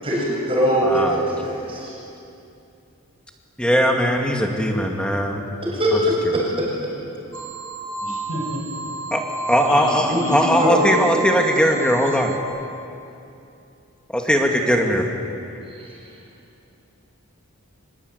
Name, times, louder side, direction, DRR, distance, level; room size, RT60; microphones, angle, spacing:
voice 1, 0.0-1.9 5.6-6.7 10.1-10.2 10.6-11.0 15.7-16.1, equal, 25° right, -4 dB, 7.6 m, -22 dB
voice 2, 0.8-1.2 3.6-5.4 9.1-9.2 9.5-12.3 14.1-15.1, equal, 5° left, 2 dB, 2.3 m, -19 dB
sound 1, 7.3-12.4, right 3 dB, 55° right, 3.1 m, -31 dB
voice 3, 8.0-8.6 9.7-10.7, left 2 dB, 75° left, 0 dB, 6.9 m, -29 dB
25.0 x 23.0 x 9.6 m, 2.7 s
head